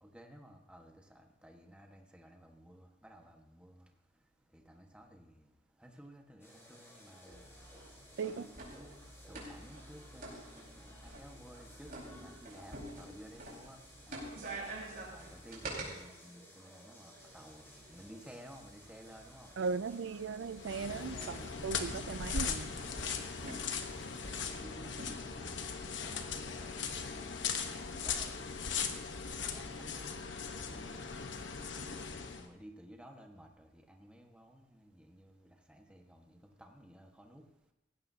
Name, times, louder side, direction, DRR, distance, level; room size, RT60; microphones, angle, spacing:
voice 1, 0.0-3.9 4.5-5.3 5.8-7.5 8.2-13.8 14.1-14.4 15.1-19.5 21.1-22.1 22.3-22.7 24.3-27.7 28.0-28.4 29.4-31.8 32.4-37.4, equal, 5° right, 2 dB, 1.4 m, -55 dB
sound 1, 6.4-24.6, equal, 15° left, 4.0 m, -58 dB
sound 2, 7.3-15.9 17.2-25.4, right 2 dB, 55° right, 4.7 m, -49 dB
voice 2, 19.6-21.4 21.6-22.7, right 5 dB, 75° right, 15 dB, 0.4 m, -37 dB
sound 3, 20.5-32.5, left 6 dB, 80° left, 1.2 m, -39 dB
18.0 x 16.0 x 2.8 m, 0.91 s
head